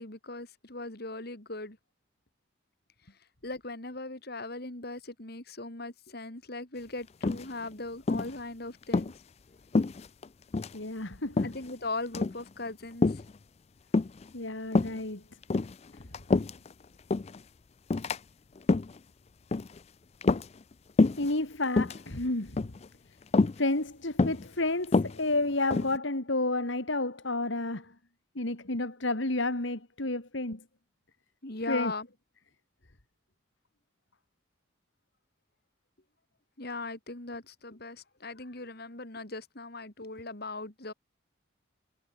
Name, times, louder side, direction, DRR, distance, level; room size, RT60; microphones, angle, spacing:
voice 1, 0.0-1.8 3.4-9.1 11.4-13.2 31.4-32.1 36.6-40.9, left 2 dB, 50° left, 2.7 m, -39 dB
sound 1, 7.2-7.7 8.1-8.4 8.8-9.1 9.7-10.3 10.5-10.8 11.4-11.7 12.1-12.4 13.0-13.3 13.9-14.3 14.7-15.0 15.4-16.7 17.1-17.4 17.9-18.2 18.6-19.0 19.5-19.8 20.2-20.7 21.0-21.3 21.7-22.0 22.6-22.9 23.3-23.6 24.2-24.5 24.8-26.0, left 3 dB, 30° left, 0.4 m, -26 dB
voice 2, 10.7-11.5 14.3-15.2 15.9-16.0 21.2-22.7 23.6-27.9 28.4-30.6 31.7-31.9, left 2 dB, 70° left, 2.6 m, -31 dB
head